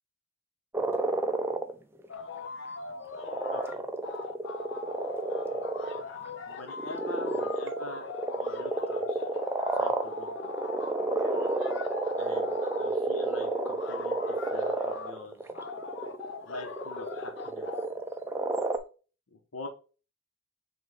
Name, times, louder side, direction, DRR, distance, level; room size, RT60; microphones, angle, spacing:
sound 1, 0.7-1.7 2.0-2.1 3.1-6.0 6.5-18.8, right 2 dB, 10° right, 0.3 m, -31 dB
sound 2, 2.1-3.7 4.0-12.9 13.4-15.1 15.5-17.9, left 4 dB, 55° left, 0.5 m, -40 dB
voice 1, 3.5-3.9 6.5-8.1 8.4-9.3 9.7-10.5 12.2-15.4 16.4-17.7 19.3-19.7, left 2 dB, 80° left, 3 dB, 1.0 m, -45 dB
5.9 x 2.5 x 3.3 m, 0.35 s
head